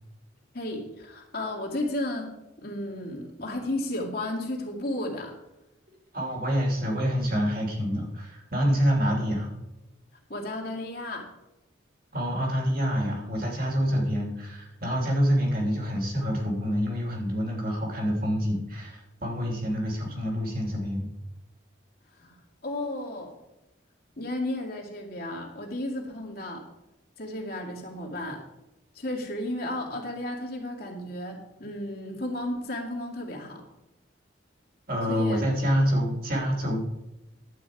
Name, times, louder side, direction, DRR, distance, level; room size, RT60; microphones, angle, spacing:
voice 1, 0.5-5.3 10.3-11.3 22.2-22.4 22.6-23.4 24.2-26.7 27.2-28.4 28.9-33.6 35.1-35.4, left 1 dB, 50° left, -1 dB, 2.3 m, -33 dB
voice 2, 6.1-9.5 12.1-21.1 34.9-36.8, equal, 45° right, 0 dB, 2.9 m, -27 dB
11.5 x 8.7 x 4.8 m, 0.93 s
head